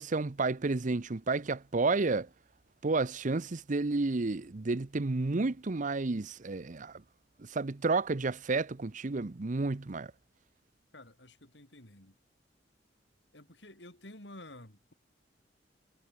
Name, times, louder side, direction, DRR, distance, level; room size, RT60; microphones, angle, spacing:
voice 1, 0.0-2.3 2.8-7.0 7.4-10.1, right 3 dB, 45° right, 0.7 m, -31 dB
voice 2, 10.9-12.2 13.3-14.9, left 1 dB, 75° left, 7.6 m, -51 dB
head